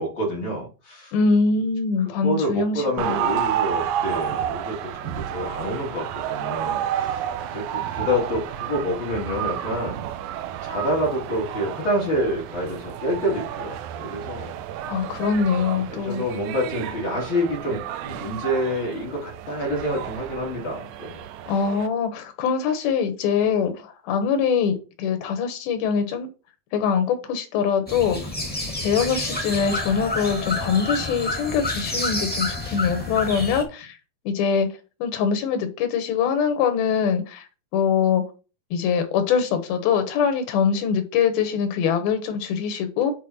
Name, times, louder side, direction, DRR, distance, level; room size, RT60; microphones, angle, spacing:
voice 1, 0.0-1.1 2.2-7.2 7.5-10.0 10.6-14.5 15.9-21.2, equal, 40° left, -2 dB, 2.5 m, -27 dB
voice 2, 1.1-3.2 14.8-16.2 21.5-26.3 26.7-28.2 28.8-34.0 34.3-34.7 35.0-37.4 37.7-38.2 38.7-43.1, left 6 dB, 80° left, 7 dB, 3.1 m, -23 dB
sound 1, 3.0-21.9, right 10 dB, 85° right, 1.7 m, -31 dB
sound 2, 27.9-33.6, left 2 dB, 10° left, 0.5 m, -29 dB
8.3 x 4.4 x 4.2 m, 0.34 s
omnidirectional pair, 4.2 m